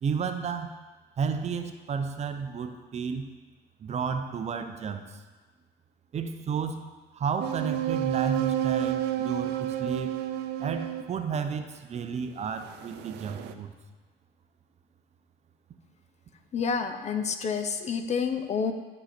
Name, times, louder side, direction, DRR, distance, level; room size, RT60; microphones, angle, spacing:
voice 1, 0.0-0.7 1.2-3.3 3.8-5.2 6.1-6.9 7.1-10.2 10.6-13.7, right 6 dB, 40° right, 7 dB, 0.7 m, -32 dB
sound 1, 7.4-11.2 12.8-13.5, right 12 dB, 85° right, 0.5 m, -30 dB
voice 2, 16.5-18.7, left 6 dB, 40° left, 8 dB, 0.7 m, -29 dB
10.5 x 5.4 x 4.4 m, 1.3 s
cardioid pair, 110°, 17 cm